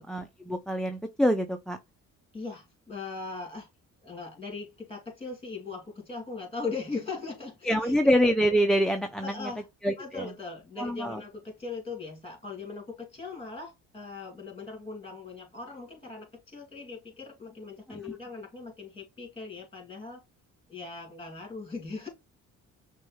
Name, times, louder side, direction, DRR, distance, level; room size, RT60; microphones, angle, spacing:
voice 1, 0.1-1.8 7.6-9.5 9.8-10.3 10.8-11.2 17.9-18.0, equal, ahead, 0.4 m, -26 dB
voice 2, 2.3-3.7 4.0-8.0 9.2-9.6 10.0-20.2 20.7-22.1, left 4 dB, 20° left, 2.5 m, -39 dB
6.1 x 2.3 x 3.1 m
cardioid pair, 90°, 30 cm